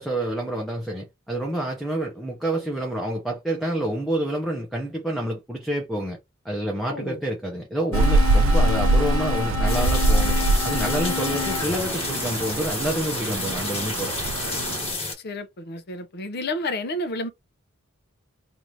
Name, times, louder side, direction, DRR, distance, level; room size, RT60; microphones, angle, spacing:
voice 1, 0.0-6.2 6.4-10.4 10.6-14.1, right 1 dB, ahead, 0.7 m, -28 dB
voice 2, 6.9-7.2 15.2-17.3, left 1 dB, 50° left, 0.6 m, -30 dB
sound 1, 7.9-13.0, left 7 dB, 85° left, 0.8 m, -31 dB
Rain, 7.9-14.9, right 2 dB, 80° right, 0.4 m, -23 dB
sound 2, 9.7-15.1, left 3 dB, 30° left, 1.2 m, -30 dB
2.8 x 2.5 x 3.1 m
head